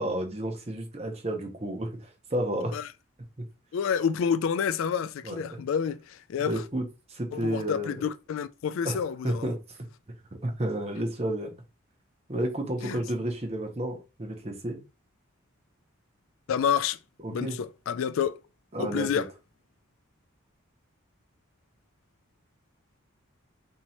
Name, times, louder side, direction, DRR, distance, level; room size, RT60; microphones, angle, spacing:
voice 1, 0.0-2.8 5.2-5.6 6.4-8.1 8.8-9.0 9.2-9.6 10.4-11.6 12.3-14.8 17.2-17.6 18.7-19.2, right 1 dB, 30° right, 0.7 m, -31 dB
voice 2, 3.7-6.6 7.3-9.5 12.8-13.0 16.5-17.0 17.3-18.4 18.8-19.3, left 7 dB, 70° left, 0.3 m, -29 dB
2.9 x 2.8 x 4.2 m
head